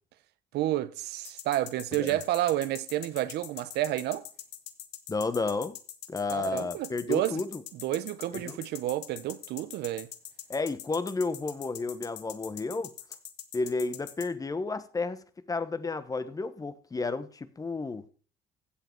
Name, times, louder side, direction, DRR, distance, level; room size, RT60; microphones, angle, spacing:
voice 1, 0.5-4.2 6.3-7.4 7.7-10.1, right 14 dB, 80° right, 0.8 m, -30 dB
sound 1, 1.2-14.3, left 12 dB, 85° left, 1.4 m, -42 dB
voice 2, 5.1-5.7 6.1-7.6 8.3-8.6 10.5-12.9 13.5-18.0, left 3 dB, 20° left, 1.0 m, -32 dB
15.5 x 7.9 x 4.6 m
cardioid pair, 110°, 17 cm